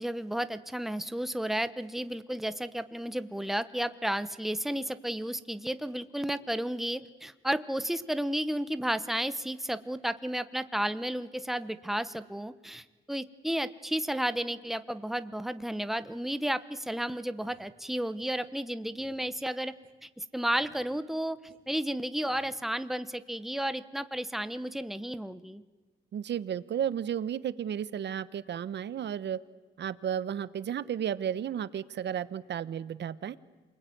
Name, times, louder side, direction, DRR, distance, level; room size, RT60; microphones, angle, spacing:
voice 1, 0.0-19.7 20.0-21.4 21.7-25.6, right 1 dB, ahead, 13 dB, 1.0 m, -32 dB
sound 1, 16.9-17.0 17.4-17.7 18.2-18.3 18.9-19.3 19.8-19.9 20.5-20.9 21.5-21.6 22.2-22.6, right 5 dB, 45° right, 3.8 m, -58 dB
voice 2, 26.1-29.4 29.8-33.3, right 9 dB, 60° right, 16 dB, 1.1 m, -33 dB
28.0 x 21.0 x 9.4 m, 1.3 s
cardioid pair, 120°, 20 cm